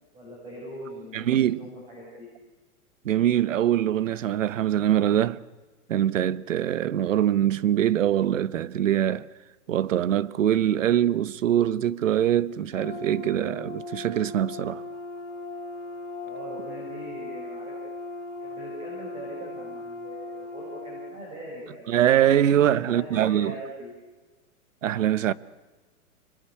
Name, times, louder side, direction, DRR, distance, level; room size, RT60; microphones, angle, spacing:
voice 1, 0.1-2.3 16.2-17.7 18.4-22.1 22.6-23.9, right 1 dB, 10° right, 5.9 m, -41 dB
voice 2, 1.1-1.6 3.0-5.4 5.9-9.3 9.7-14.8 21.9-23.5 24.8-25.3, right 11 dB, 55° right, 1.0 m, -23 dB
Brass instrument, 12.7-21.2, left 2 dB, 30° left, 3.9 m, -38 dB
29.5 x 20.5 x 8.4 m
hypercardioid pair, 180°, 44 cm